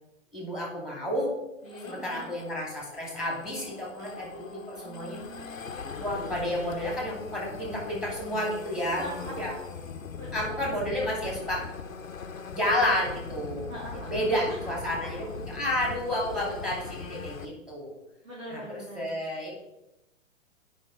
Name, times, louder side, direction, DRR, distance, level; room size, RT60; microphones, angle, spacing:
voice 1, 0.3-1.3 1.8-5.2 6.0-9.1 9.4-9.5 10.3-11.7 12.5-13.7 14.1-15.2 15.5-17.9 18.5-18.6 18.9-19.5, left 1 dB, ahead, -2 dB, 2.4 m, -31 dB
voice 2, 1.6-2.3 4.7-5.6 8.9-9.6 10.2-10.7 13.7-15.3 18.2-19.1, right 1 dB, 80° right, -7 dB, 3.3 m, -41 dB
sound 1, 1.7-17.5, left 5 dB, 90° left, 0.8 m, -41 dB
9.0 x 5.4 x 4.0 m, 0.89 s
figure-of-eight pair, 120°, 39 cm